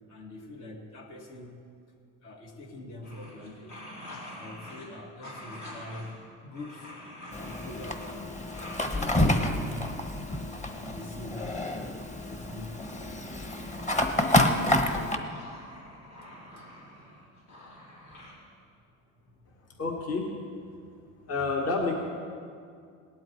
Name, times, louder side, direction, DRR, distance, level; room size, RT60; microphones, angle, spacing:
voice 1, 0.1-1.6 2.2-3.9 4.4-6.2 6.4-6.9 7.4-8.3 8.9-9.9 10.3-13.3 19.2-19.4 19.7-19.8, left 1 dB, 65° left, 1 dB, 2.2 m, -43 dB
sound 1, 3.0-4.9 5.2-6.2 6.5-8.2 8.5-9.9 13.4-14.9 15.2-18.3, left 1 dB, 80° left, 4.6 m, -46 dB
Fire, 7.3-15.2, left 1 dB, 20° left, 1.3 m, -28 dB
voice 2, 19.8-20.3 21.3-21.9, left 3 dB, 45° left, 0 dB, 1.9 m, -28 dB
18.0 x 11.5 x 4.7 m, 2.3 s
cardioid pair, 100°, 33 cm